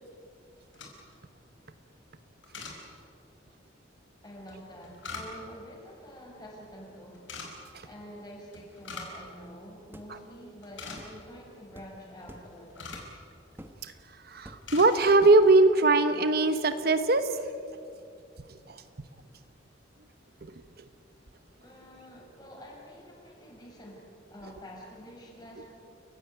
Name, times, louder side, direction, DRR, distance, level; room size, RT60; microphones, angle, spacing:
sound 1, 0.6-1.2 2.4-2.8 4.5-5.6 7.1-7.5 8.5-9.2 9.5-9.6 10.1-10.3 10.5-11.3 12.2-13.1 13.9-14.1 14.4-14.9 15.3-15.5, left 4 dB, 75° left, 5.3 m, -42 dB
voice 1, 4.2-7.3 7.8-13.0 21.6-25.7, equal, 20° left, -1 dB, 6.4 m, -47 dB
sound 2, 9.9-10.1 11.0-11.2 11.7-11.9 12.3-12.5 12.9-13.2 13.6-13.8 14.4-14.8 15.2-15.5, equal, 10° right, 1.5 m, -48 dB
voice 2, 14.2-17.4 18.5-18.8 20.4-20.5, right 2 dB, 55° right, 10 dB, 1.1 m, -22 dB
29.5 x 16.0 x 9.2 m, 2.5 s
head